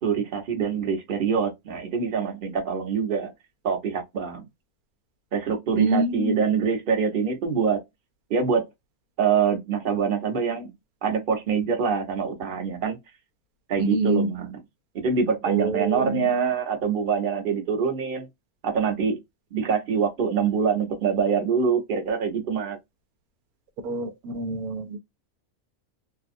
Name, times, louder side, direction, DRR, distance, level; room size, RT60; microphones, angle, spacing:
voice 1, 0.0-3.3 3.6-4.4 5.3-7.8 8.3-8.6 9.2-10.7 11.0-13.0 13.7-14.6 14.9-18.3 18.6-19.2 19.5-22.8, right 6 dB, 40° right, 0.9 m, -25 dB
voice 2, 5.7-6.4 13.8-14.3 15.5-16.2 23.8-25.0, right 3 dB, 85° right, 1.2 m, -26 dB
2.8 x 2.3 x 2.5 m
omnidirectional pair, 1.5 m